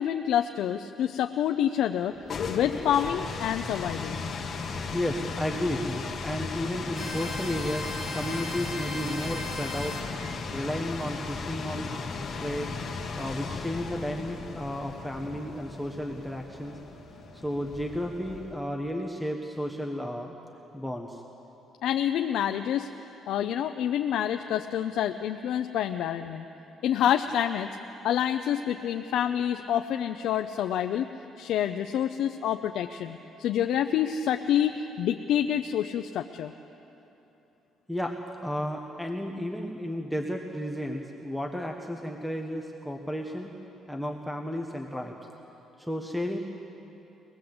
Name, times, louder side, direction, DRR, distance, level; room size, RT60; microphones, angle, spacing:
voice 1, 0.0-2.1 2.5-4.2 21.8-22.9 23.3-26.4 26.8-27.7 28.0-31.1 31.4-36.5, left 10 dB, 70° left, 7 dB, 0.6 m, -27 dB
sound 1, 2.0-18.7, left 4 dB, 40° left, 2.2 m, -36 dB
voice 2, 4.9-10.0 10.5-11.9 12.4-12.7 13.2-16.8 17.3-20.3 20.7-21.2 37.9-43.5 43.9-45.2 45.8-46.4, equal, ahead, 2 dB, 1.1 m, -33 dB
sound 2, 6.9-10.1, left 1 dB, 20° right, 2.8 m, -38 dB
24.0 x 20.0 x 7.9 m, 3.0 s
cardioid pair, 155°, 0 cm